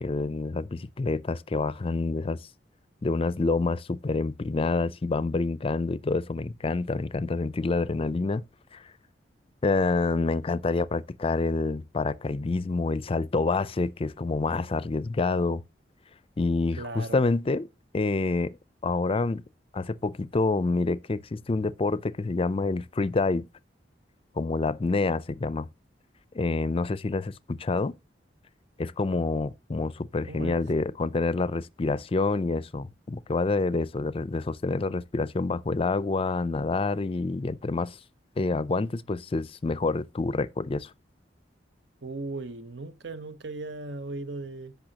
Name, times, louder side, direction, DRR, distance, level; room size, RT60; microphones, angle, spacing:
voice 1, 0.0-2.4 3.0-8.4 8.7-8.8 9.6-15.6 16.4-17.7 17.9-18.6 18.8-19.4 19.7-23.5 24.4-25.7 26.3-27.9 28.8-38.0 38.4-40.9, left 3 dB, 30° left, 0.4 m, -27 dB
voice 2, 16.8-17.2 30.3-30.6 42.0-44.8, right 2 dB, 70° right, 0.9 m, -37 dB
15.0 x 5.5 x 2.9 m
head